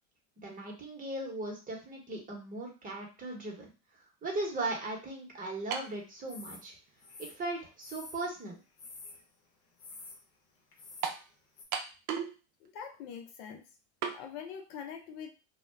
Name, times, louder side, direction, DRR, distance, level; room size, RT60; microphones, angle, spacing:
voice 1, 0.4-6.7 7.2-8.6, right 2 dB, 25° right, -1 dB, 1.1 m, -38 dB
sound 1, 5.7-6.0 6.9-7.0 11.0-11.3 11.7-12.4 12.6-12.7 14.0-14.2, right 7 dB, 55° right, 0.6 m, -35 dB
sound 2, 6.3-6.6 7.0-8.3 8.8-9.2 9.8-10.2 10.7-11.1 11.6-11.7, left 3 dB, 45° left, 0.9 m, -48 dB
voice 2, 12.6-13.6 14.0-15.3, left 7 dB, 70° left, 3 dB, 0.7 m, -44 dB
2.3 x 2.2 x 3.2 m, 0.32 s
supercardioid pair, 115°, 33 cm